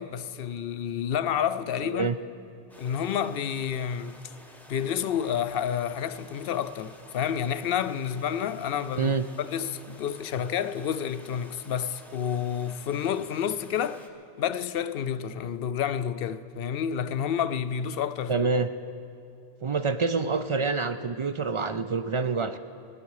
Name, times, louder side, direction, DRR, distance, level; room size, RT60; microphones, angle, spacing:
voice 1, 0.0-2.2 2.8-4.2 4.7-14.0 14.4-18.5, left 8 dB, 70° left, 0.7 m, -29 dB
voice 2, 1.8-2.2 8.9-9.3 18.3-18.7 19.6-22.6, right 4 dB, 45° right, 0.4 m, -27 dB
sound 1, 2.7-14.1, equal, ahead, 1.0 m, -51 dB
29.5 x 10.0 x 4.7 m
omnidirectional pair, 1.1 m